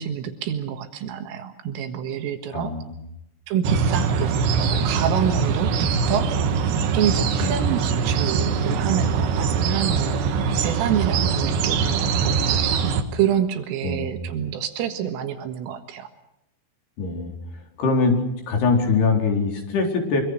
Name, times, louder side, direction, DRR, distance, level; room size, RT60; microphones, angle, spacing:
voice 1, 0.0-2.8 3.5-6.3 6.9-12.7 13.1-16.1, right 9 dB, 80° right, 6 dB, 4.1 m, -27 dB
voice 2, 2.5-2.9 7.4-7.7 13.8-14.3 17.0-17.3 17.8-18.2 18.5-20.2, left 4 dB, 55° left, 2 dB, 6.0 m, -22 dB
sound 1, 3.6-13.0, right 6 dB, 65° right, 3.5 m, -22 dB
25.0 x 24.5 x 6.5 m, 0.84 s
omnidirectional pair, 5.9 m